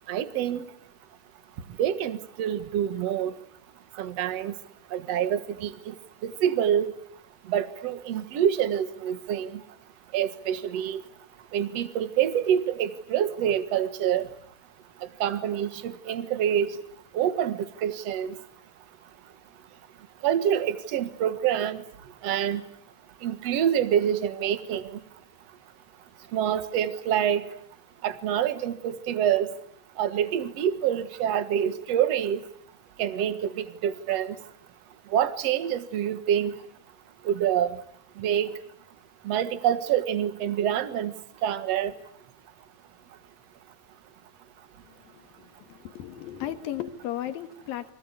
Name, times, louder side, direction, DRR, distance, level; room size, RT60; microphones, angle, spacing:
voice 1, 0.1-0.6 1.8-3.3 4.0-4.5 4.9-5.9 6.2-6.9 7.5-9.6 10.1-11.0 11.5-14.3 15.2-16.7 17.1-18.3 20.2-21.8 22.2-22.6 23.2-25.0 26.3-27.5 28.0-29.5 30.0-32.4 33.0-34.4 35.1-36.5 37.3-37.8 38.2-38.5 39.3-41.1 41.4-41.9, right 9 dB, 55° right, 11 dB, 2.3 m, -26 dB
voice 2, 44.9-45.2 45.6-47.9, left 11 dB, 85° left, 9 dB, 3.5 m, -35 dB
29.0 x 25.0 x 8.3 m, 0.66 s
omnidirectional pair, 4.0 m